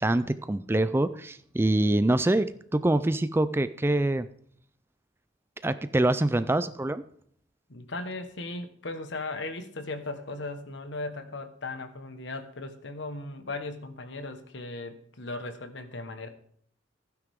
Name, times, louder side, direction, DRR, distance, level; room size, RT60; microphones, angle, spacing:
voice 1, 0.0-4.3 5.6-7.0, right 1 dB, 10° right, 13 dB, 0.4 m, -25 dB
voice 2, 7.7-16.3, left 2 dB, 65° left, 8 dB, 1.3 m, -37 dB
15.5 x 9.6 x 3.6 m, 0.63 s
head